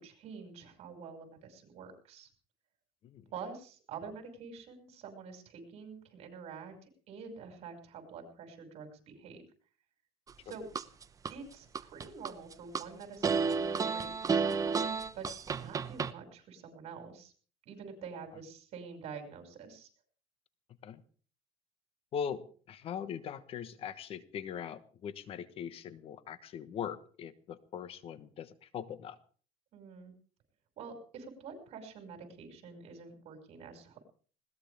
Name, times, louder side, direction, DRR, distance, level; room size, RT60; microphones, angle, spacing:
voice 1, 0.0-2.3 3.3-6.8 7.1-9.4 10.4-10.6 11.3-15.3 15.6-17.3 17.7-19.9 29.7-30.1 30.8-34.0, right 5 dB, 55° right, 5 dB, 6.0 m, -47 dB
sound 1, 10.3-11.3 11.8-12.8 13.2-16.1, right 5 dB, 25° right, 1.0 m, -31 dB
voice 2, 22.1-29.2, left 8 dB, 45° left, 13 dB, 1.2 m, -41 dB
20.5 x 18.0 x 3.5 m, 0.43 s
cardioid pair, 115°, 13 cm